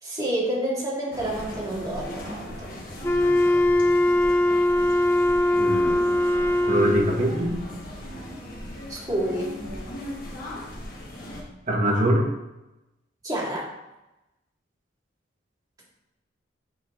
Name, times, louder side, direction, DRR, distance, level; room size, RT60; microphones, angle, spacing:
voice 1, 0.0-2.7 8.9-9.5 13.2-13.7, right 1 dB, 20° right, -5 dB, 2.1 m, -29 dB
sound 1, 1.1-11.4, left 1 dB, 50° left, 1.4 m, -38 dB
Wind instrument woodwind instrument, 3.0-7.3, left 1 dB, 15° left, 0.5 m, -21 dB
voice 2, 5.6-6.2 6.6-7.6 11.7-12.3, right 1 dB, 45° right, -2 dB, 1.6 m, -23 dB
8.3 x 4.4 x 3.8 m, 0.95 s
head